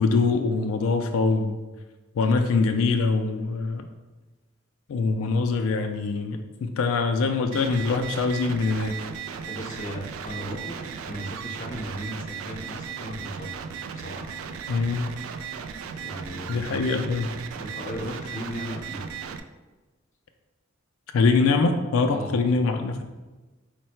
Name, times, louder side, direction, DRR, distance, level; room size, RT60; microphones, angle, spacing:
voice 1, 0.0-1.6 2.2-3.9 4.9-9.0 14.7-15.1 16.5-17.3 21.1-23.0, left 4 dB, 85° left, 6 dB, 0.3 m, -23 dB
sound 1, 7.5-19.4, right 6 dB, 90° right, 0.3 m, -36 dB
voice 2, 9.5-10.8 11.1-13.5 13.9-14.3 16.0-16.9 17.6-19.0 22.1-22.4, equal, 40° left, 1 dB, 0.6 m, -36 dB
4.6 x 2.1 x 4.3 m, 1.2 s
head